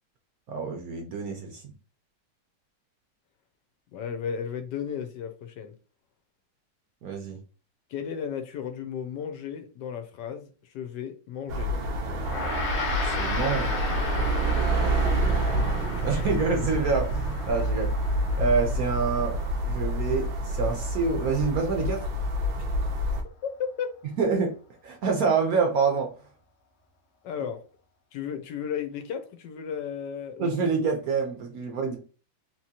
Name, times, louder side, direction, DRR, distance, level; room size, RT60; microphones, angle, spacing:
voice 1, 0.5-1.6 7.0-7.4 13.2-13.8 16.0-17.9 18.4-19.3 19.7-22.0 24.2-24.5 24.8-26.1 30.4-32.0, right 4 dB, 65° right, 2 dB, 1.0 m, -26 dB
voice 2, 3.9-5.7 7.9-11.7 15.3-15.5 15.9-16.1 22.6-22.7 23.4-24.0 27.2-27.6 28.1-30.7, left 7 dB, 75° left, 7 dB, 1.1 m, -34 dB
sound 1, 11.5-23.2, right 1 dB, 90° right, 1.5 m, -27 dB
Gong, 12.2-21.8, left 4 dB, 55° left, 0.8 m, -36 dB
3.8 x 3.0 x 2.8 m, 0.37 s
omnidirectional pair, 2.0 m